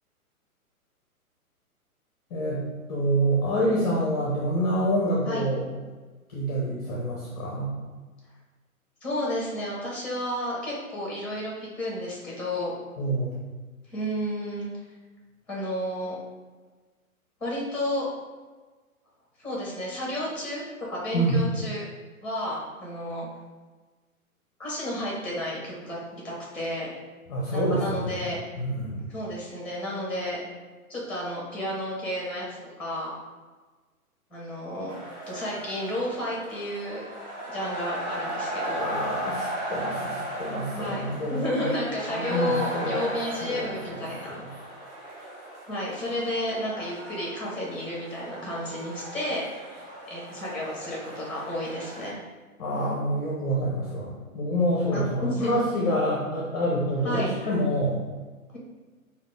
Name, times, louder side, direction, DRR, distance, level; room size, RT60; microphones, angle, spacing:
voice 1, 2.3-5.7 6.3-7.7 13.0-13.3 21.1-21.4 27.3-28.3 28.6-29.1 38.8-41.6 42.1-43.0 43.4-44.5 52.6-58.0, equal, 25° left, -4 dB, 0.6 m, -27 dB
voice 2, 9.0-12.7 13.9-14.7 15.5-16.1 17.4-18.1 19.4-21.8 22.2-23.3 24.6-26.0 26.2-26.9 27.5-28.4 29.1-30.4 30.9-32.4 32.8-33.1 34.3-34.9 35.3-37.0 37.5-38.9 40.7-41.0 41.3-44.3 45.7-52.2 54.9-55.5 57.0-57.3, left 1 dB, 5° left, -4 dB, 1.0 m, -32 dB
sound 1, 34.9-52.1, right 1 dB, 30° right, 0.8 m, -37 dB
5.1 x 2.3 x 3.6 m, 1.3 s
figure-of-eight pair, 120°, 43 cm